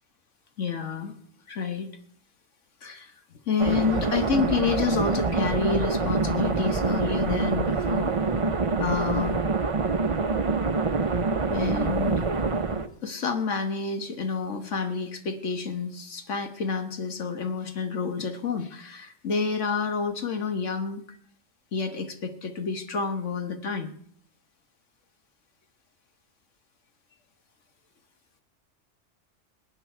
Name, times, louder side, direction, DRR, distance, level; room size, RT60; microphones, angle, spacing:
voice 1, 0.6-1.1 1.5-1.9 2.8-3.1 3.5-8.1 8.8-9.4 11.5-12.3 13.0-21.2 21.7-23.9, left 5 dB, 85° left, 6 dB, 1.6 m, -29 dB
sound 1, 3.6-12.9, right 4 dB, 30° right, 0.8 m, -26 dB
22.0 x 9.1 x 4.5 m, 0.62 s
omnidirectional pair, 1.2 m